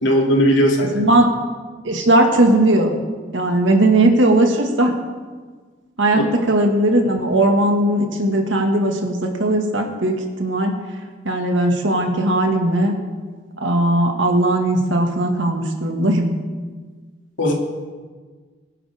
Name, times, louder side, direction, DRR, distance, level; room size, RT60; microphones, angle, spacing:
voice 1, 0.0-0.9 6.1-6.2 17.4-17.5, equal, 75° left, 0 dB, 2.8 m, -17 dB
voice 2, 0.9-1.3 1.8-3.0 3.3-4.9 6.0-10.7 11.2-12.9 13.6-16.4, right 1 dB, 75° right, 2 dB, 2.0 m, -18 dB
24.0 x 10.5 x 3.7 m, 1.5 s
head